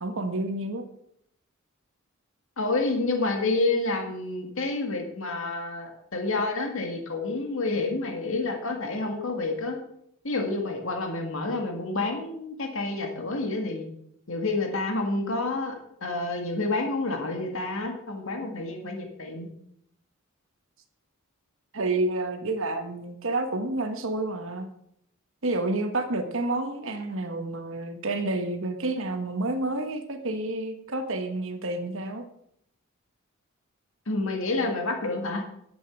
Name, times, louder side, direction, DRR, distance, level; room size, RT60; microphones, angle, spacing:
voice 1, 0.0-0.8 21.7-24.7 25.4-32.2, right 2 dB, 65° right, 6 dB, 1.3 m, -29 dB
voice 2, 2.6-9.8 10.2-13.9 14.3-19.5 34.1-35.4, left 2 dB, 65° left, 3 dB, 1.9 m, -29 dB
11.0 x 8.3 x 5.9 m, 0.72 s
head